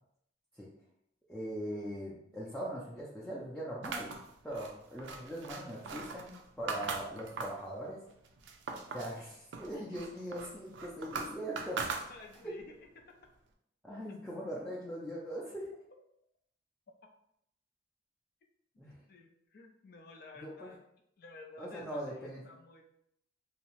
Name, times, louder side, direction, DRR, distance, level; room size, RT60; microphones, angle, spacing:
voice 1, 1.3-4.1 4.4-8.0 8.9-11.8 13.8-15.7 18.8-19.0 20.4-20.7 21.6-22.4, equal, 5° left, -7 dB, 0.4 m, -41 dB
sound 1, 3.8-7.7 8.1-9.2 9.5-12.5, right 4 dB, 90° right, 0.4 m, -41 dB
voice 2, 11.8-13.3 17.0-17.1 19.1-20.8 21.2-22.8, left 3 dB, 60° left, 3 dB, 0.4 m, -53 dB
2.7 x 2.0 x 2.9 m, 0.75 s
head